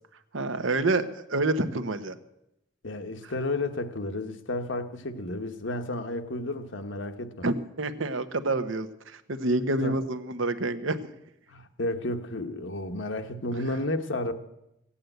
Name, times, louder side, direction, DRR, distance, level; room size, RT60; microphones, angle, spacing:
voice 1, 0.3-2.2 7.4-8.9 9.1-11.1, right 2 dB, 80° right, 1.0 m, -28 dB
voice 2, 2.8-7.5 9.8-10.0 11.5-14.3, left 2 dB, 70° left, 1.1 m, -32 dB
16.0 x 8.6 x 7.9 m
head